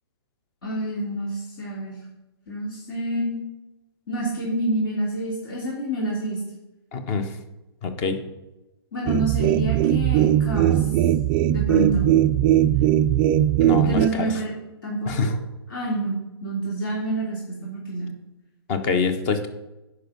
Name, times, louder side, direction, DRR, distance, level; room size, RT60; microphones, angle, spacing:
voice 1, 0.6-2.1 2.5-3.4 4.1-6.4 8.9-10.9 11.5-12.1 13.8-14.5 14.8-15.3 15.7-18.1, right 1 dB, 55° left, -4 dB, 3.3 m, -27 dB
voice 2, 6.9-7.4 7.8-8.2 13.6-14.3 15.1-15.3 18.7-19.5, left 4 dB, 30° left, 9 dB, 1.2 m, -25 dB
sound 1, 9.1-14.1, right 12 dB, 25° right, 0.4 m, -19 dB
10.5 x 4.9 x 6.3 m, 0.99 s
figure-of-eight pair, 120°, 14 cm